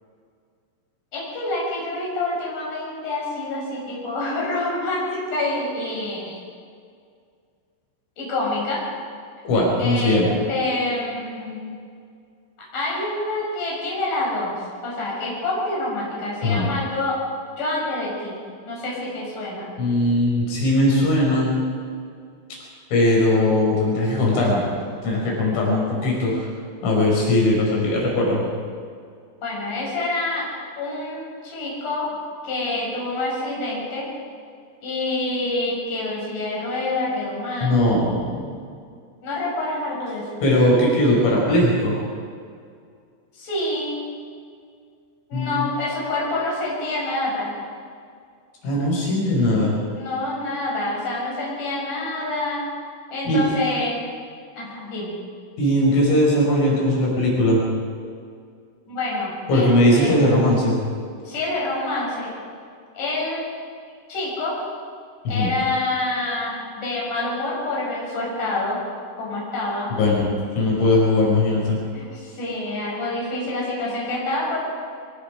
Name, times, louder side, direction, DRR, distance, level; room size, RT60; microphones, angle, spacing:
voice 1, 1.1-6.4 8.2-8.8 9.8-10.2 10.5-11.7 12.7-17.2 17.5-18.4 18.7-19.7 29.4-30.4 30.8-32.1 32.4-34.1 34.8-37.8 39.2-40.4 43.3-44.1 45.3-47.5 50.0-52.7 53.1-54.0 54.5-55.2 58.9-60.1 61.2-62.3 62.9-63.4 64.1-64.5 65.3-68.8 69.2-69.9 71.9-74.6, left 2 dB, 40° left, -5 dB, 8.1 m, -27 dB
voice 2, 9.4-10.3 16.4-16.7 19.8-21.5 22.9-24.7 25.0-26.5 26.8-28.4 37.6-38.5 40.4-41.9 45.3-45.6 48.6-49.8 53.3-53.4 55.6-57.6 59.5-60.8 65.3-65.5 70.0-71.8, left 1 dB, 80° left, -3 dB, 8.0 m, -19 dB
23.5 x 23.0 x 5.2 m, 2.2 s
omnidirectional pair, 5.7 m